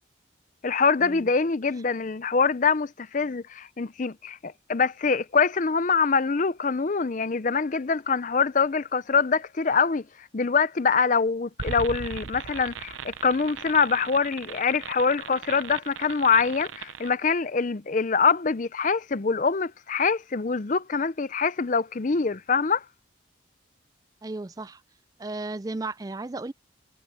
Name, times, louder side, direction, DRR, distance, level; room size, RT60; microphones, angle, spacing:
voice 1, 0.6-22.8, left 5 dB, 40° left, 0.5 m, -24 dB
sound 1, 11.6-17.1, right 7 dB, 80° right, 0.6 m, -38 dB
voice 2, 24.2-24.8 25.2-26.5, right 2 dB, 20° right, 0.4 m, -34 dB
head